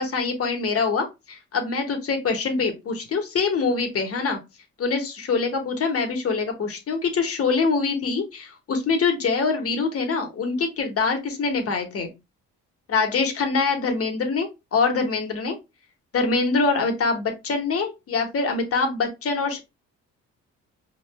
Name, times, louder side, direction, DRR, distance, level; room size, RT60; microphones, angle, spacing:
voice 1, 0.0-4.4 4.8-12.1 12.9-15.6 16.1-19.6, left 4 dB, 50° left, 4 dB, 1.3 m, -24 dB
4.9 x 3.3 x 2.2 m, 0.24 s
cardioid pair, 90°, 30 cm